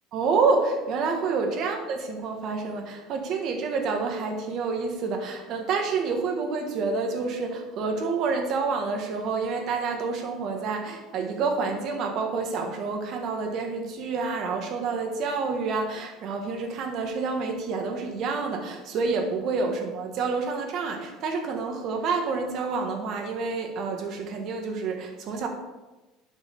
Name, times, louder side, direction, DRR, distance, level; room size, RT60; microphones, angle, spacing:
voice 1, 0.1-25.5, right 4 dB, 50° right, 3 dB, 1.7 m, -28 dB
11.0 x 6.1 x 3.7 m, 1.1 s
cardioid pair, 140°, 0 cm